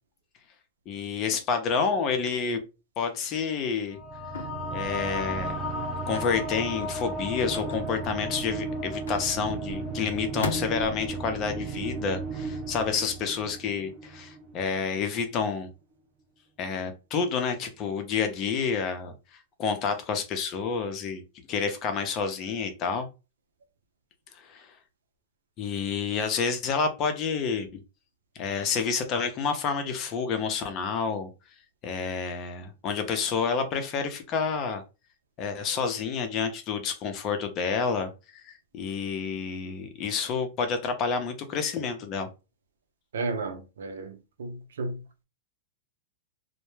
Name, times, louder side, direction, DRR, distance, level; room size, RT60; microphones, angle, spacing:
voice 1, 0.9-2.6 3.0-4.0 4.7-5.7 6.1-15.7 16.6-19.1 19.6-21.2 21.5-23.1 24.4-24.7 25.6-27.7 28.4-31.3 31.8-34.8 35.4-42.3, left 5 dB, 35° left, 0.6 m, -29 dB
sound 1, 3.9-14.8, right 1 dB, 20° right, 0.7 m, -34 dB
sound 2, 4.3-4.8 6.1-6.5 7.5-8.2 9.1-9.8 10.4-11.1, left 2 dB, 85° left, 0.5 m, -37 dB
voice 2, 43.1-45.0, right 3 dB, 85° right, 0.6 m, -33 dB
2.1 x 2.1 x 3.1 m
hypercardioid pair, 125°, 0 cm